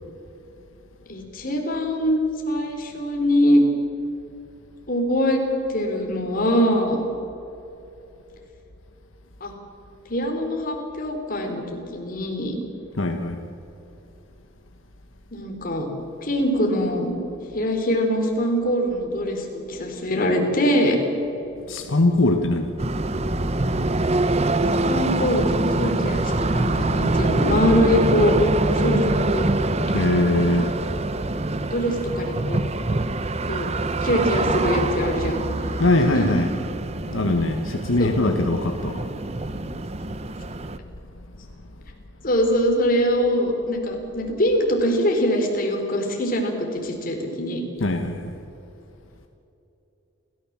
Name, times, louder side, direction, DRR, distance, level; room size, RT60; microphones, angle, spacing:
voice 1, 1.1-2.2 2.5-3.6 4.9-5.4 5.7-7.0 9.4-9.5 10.1-12.6 15.3-15.9 16.2-17.2 17.5-21.0 24.8-25.4 25.7-28.4 28.8-29.5 30.5-30.6 31.7-32.6 33.4-33.7 34.0-35.4 36.1-36.3 38.0-38.2 42.2-47.6, equal, 45° left, 2 dB, 3.7 m, -23 dB
voice 2, 13.0-13.4 21.7-22.7 24.5-24.6 29.9-30.7 35.8-36.5 37.1-39.1 47.8-48.4, left 2 dB, 75° left, 5 dB, 1.3 m, -21 dB
sound 1, 22.8-40.8, right 2 dB, 30° right, 0.8 m, -24 dB
29.0 x 14.0 x 7.4 m, 3.0 s
head